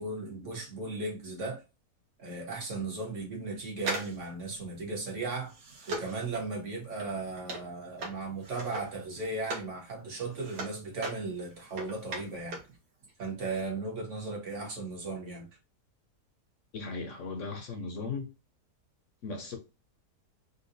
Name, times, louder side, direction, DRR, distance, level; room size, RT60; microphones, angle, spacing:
voice 1, 0.0-1.6 2.2-5.5 5.9-12.6 13.2-15.5, right 3 dB, 50° right, 1.4 m, -36 dB
sound 1, 3.8-9.8 10.1-12.8 13.0-13.1, right 2 dB, 80° right, 1.5 m, -40 dB
voice 2, 16.7-18.3 19.2-19.6, left 4 dB, 60° left, 0.8 m, -37 dB
3.9 x 2.3 x 2.5 m
omnidirectional pair, 1.8 m